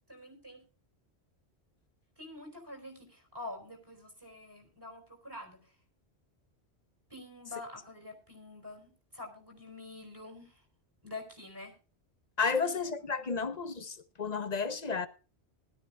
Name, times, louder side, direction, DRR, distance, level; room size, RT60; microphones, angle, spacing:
voice 1, 0.1-0.6 2.2-5.6 7.1-10.6 11.0-11.7 12.5-13.3, left 2 dB, 20° right, 4.1 m, -47 dB
voice 2, 12.4-15.1, left 5 dB, 40° left, 0.9 m, -32 dB
20.0 x 12.5 x 2.3 m
omnidirectional pair, 1.1 m